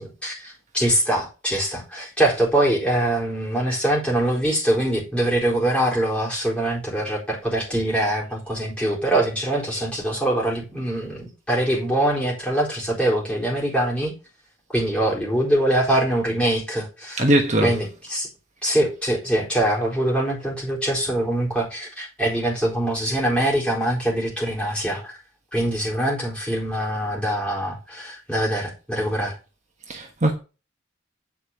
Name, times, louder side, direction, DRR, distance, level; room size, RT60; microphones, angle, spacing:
voice 1, 0.0-14.1 14.7-17.2 17.6-18.3 18.6-25.2 25.5-29.4, right 1 dB, 5° left, 4.1 m, -23 dB
voice 2, 17.2-17.8 29.9-30.4, right 1 dB, 35° right, 1.2 m, -20 dB
8.6 x 5.3 x 6.5 m
head